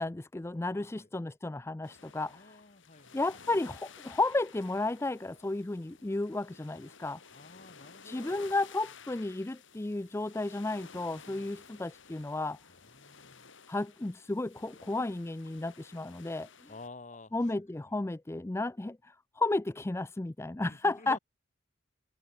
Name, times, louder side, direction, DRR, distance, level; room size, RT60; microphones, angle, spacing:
voice 1, 0.0-2.6 3.1-7.2 8.0-12.6 13.7-16.7 17.3-21.2, left 2 dB, 15° left, 0.4 m, -33 dB
voice 2, 0.7-1.1 2.3-3.2 7.3-8.4 11.3-11.7 12.7-13.5 16.7-17.5 17.9-18.0 20.6-21.2, left 3 dB, 35° left, 2.4 m, -51 dB
sound 1, 1.8-16.9, left 5 dB, 65° left, 4.8 m, -54 dB
open air
head